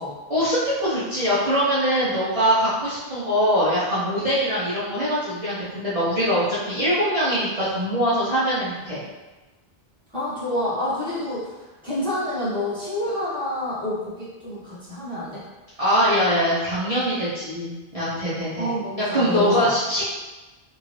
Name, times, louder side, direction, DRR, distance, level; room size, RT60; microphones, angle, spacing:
voice 1, 0.3-9.0 15.8-18.7 19.0-20.0, equal, 40° right, -12 dB, 0.8 m, -22 dB
voice 2, 10.1-15.4 18.6-19.7, left 1 dB, 5° left, -11 dB, 1.1 m, -28 dB
2.9 x 2.4 x 3.1 m, 1.1 s
omnidirectional pair, 1.0 m